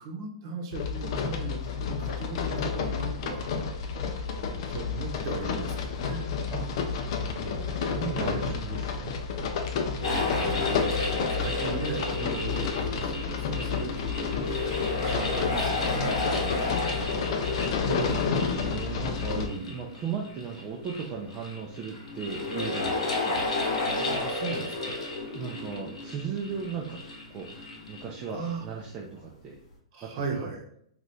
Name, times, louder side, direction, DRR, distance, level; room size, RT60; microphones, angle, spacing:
voice 1, 0.0-3.5 4.5-6.3 8.1-8.9 10.0-17.4 19.2-19.9 23.9-25.0 28.3-28.6 29.9-30.6, right 4 dB, 45° right, 0 dB, 0.9 m, -38 dB
sound 1, 0.7-19.5, left 6 dB, 55° left, 0.5 m, -31 dB
voice 2, 7.2-9.1 10.7-11.1 17.5-23.5 25.3-27.0 27.3-27.5 27.9-29.6 30.0-30.1, right 6 dB, 30° right, -2 dB, 0.5 m, -37 dB
sound 2, 10.0-28.6, left 2 dB, 75° left, 1.1 m, -32 dB
2.7 x 2.5 x 3.3 m, 0.69 s
hypercardioid pair, 125°, 3 cm